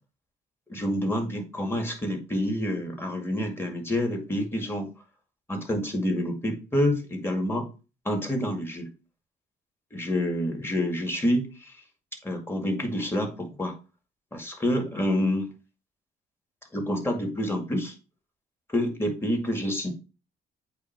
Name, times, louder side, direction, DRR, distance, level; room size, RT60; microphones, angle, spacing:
voice 1, 0.7-4.9 5.5-7.7 8.1-8.9 9.9-11.7 12.2-13.8 14.3-15.5 16.7-17.9 18.7-20.0, left 1 dB, 10° left, 2 dB, 2.0 m, -28 dB
8.4 x 2.8 x 4.5 m, 0.32 s
cardioid pair, 90°, 20 cm